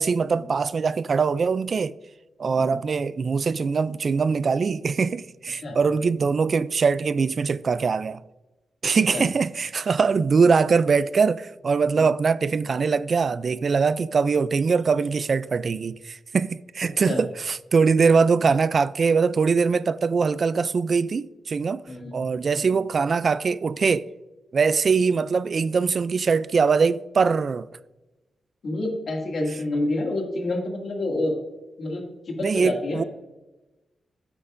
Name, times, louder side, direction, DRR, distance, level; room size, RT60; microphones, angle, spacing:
voice 1, 0.0-1.9 2.4-8.2 8.8-21.8 22.1-24.1 24.5-27.7 32.4-33.0, right 5 dB, 45° right, 0.3 m, -22 dB
voice 2, 16.8-17.2 21.9-22.2 22.6-22.7 28.6-31.4 31.8-33.0, left 2 dB, 55° left, 2.2 m, -28 dB
15.0 x 8.3 x 2.6 m
wide cardioid pair, 135°, 0 cm